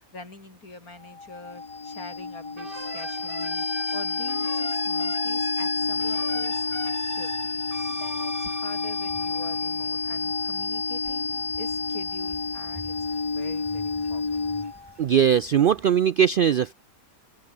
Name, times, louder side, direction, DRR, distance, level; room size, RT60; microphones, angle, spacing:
voice 1, 0.0-3.7 3.9-7.4 7.9-13.0 13.2-14.5, left 2 dB, 85° left, 5.3 m, -45 dB
sound 1, 1.0-14.9, left 4 dB, 25° left, 1.0 m, -29 dB
sound 2, 2.6-10.0, right 6 dB, 40° right, 1.3 m, -40 dB
sound 3, 5.7-15.9, equal, 15° right, 7.8 m, -51 dB
voice 2, 15.0-16.7, right 8 dB, 75° right, 0.5 m, -20 dB
open air
omnidirectional pair, 1.5 m